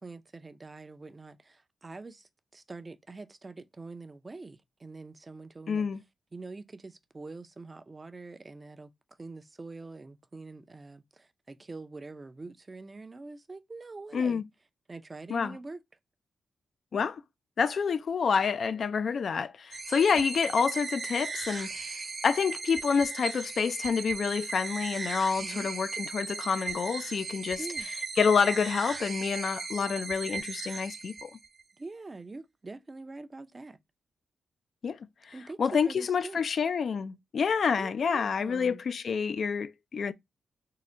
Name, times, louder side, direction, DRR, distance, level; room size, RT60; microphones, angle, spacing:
voice 1, 0.0-5.9 6.3-8.9 9.2-14.4 14.9-15.8 20.2-20.3 25.4-25.7 27.6-27.9 31.8-33.8 35.3-36.4 37.8-38.8, right 3 dB, 25° right, 0.5 m, -44 dB
voice 2, 5.7-6.0 14.1-14.4 15.3-15.6 16.9-17.2 17.6-22.0 22.2-27.6 27.9-31.3 34.8-35.0 35.3-35.4 35.6-40.1, left 6 dB, 60° left, 0.3 m, -28 dB
sound 1, 19.7-31.6, right 4 dB, 50° right, 1.0 m, -37 dB
3.7 x 2.1 x 4.3 m
cardioid pair, 95°, 0 cm